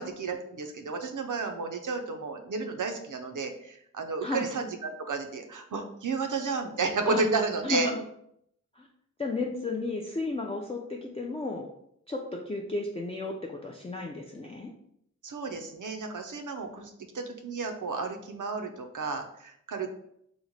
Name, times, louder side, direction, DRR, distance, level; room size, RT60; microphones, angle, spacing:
voice 1, 0.0-7.9 15.2-19.9, right 4 dB, 75° right, 5 dB, 0.5 m, -32 dB
voice 2, 7.6-8.0 8.8-8.9 9.2-11.7 12.1-14.7, left 3 dB, 20° left, -1 dB, 0.3 m, -33 dB
3.0 x 2.1 x 3.9 m, 0.72 s
wide cardioid pair, 60°, 31 cm